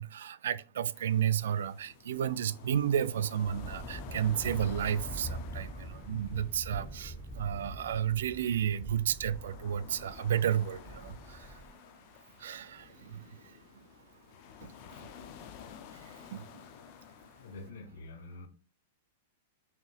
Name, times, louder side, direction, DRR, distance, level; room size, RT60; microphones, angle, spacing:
voice 1, 0.0-11.5 12.4-13.3 14.6-14.7 16.1-16.5, right 9 dB, 80° right, 0.3 m, -32 dB
sound 1, 0.9-17.7, left 8 dB, 45° left, 0.5 m, -51 dB
sound 2, 3.4-11.7, right 1 dB, 5° left, 1.0 m, -44 dB
voice 2, 17.4-18.5, left 2 dB, 70° left, 0.8 m, -46 dB
5.5 x 2.9 x 2.4 m
supercardioid pair, 150°, 0 cm